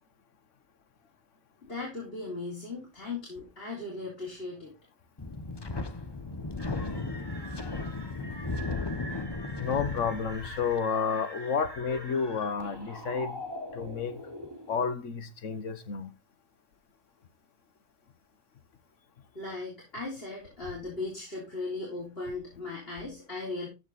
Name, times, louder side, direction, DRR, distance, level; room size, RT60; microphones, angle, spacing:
voice 1, 1.6-4.7 19.3-23.7, left 3 dB, 50° left, 4.0 m, -37 dB
Wind, 5.2-10.8, left 3 dB, 25° left, 0.8 m, -35 dB
sound 1, 6.6-14.9, equal, 20° right, 2.7 m, -44 dB
voice 2, 9.6-13.4 13.7-14.2 14.7-16.1, left 6 dB, 85° left, 1.4 m, -31 dB
14.0 x 5.0 x 4.0 m
omnidirectional pair, 1.2 m